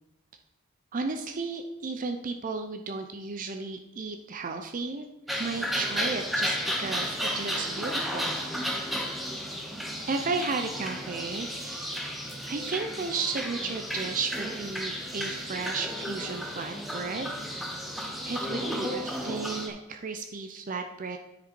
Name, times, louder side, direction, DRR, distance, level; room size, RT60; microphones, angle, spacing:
voice 1, 0.9-8.3 10.0-12.1 12.5-17.6 18.3-21.2, right 4 dB, 40° right, 5 dB, 0.5 m, -34 dB
sound 1, 5.3-19.7, equal, ahead, 0.9 m, -33 dB
9.8 x 5.2 x 4.5 m, 0.88 s
head